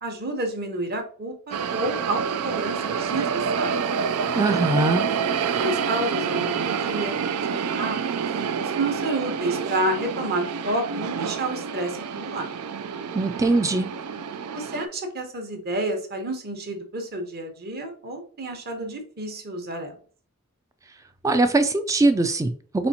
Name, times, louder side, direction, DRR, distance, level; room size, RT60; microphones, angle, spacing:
voice 1, 0.0-3.9 5.5-8.2 8.6-12.5 14.5-20.0, right 1 dB, 45° right, 5 dB, 1.0 m, -30 dB
sound 1, 1.5-14.9, right 6 dB, 85° right, 0.4 m, -28 dB
voice 2, 4.4-5.0 13.1-13.9 21.2-22.9, right 2 dB, 15° right, 9 dB, 0.3 m, -21 dB
4.2 x 4.2 x 2.8 m, 0.43 s
head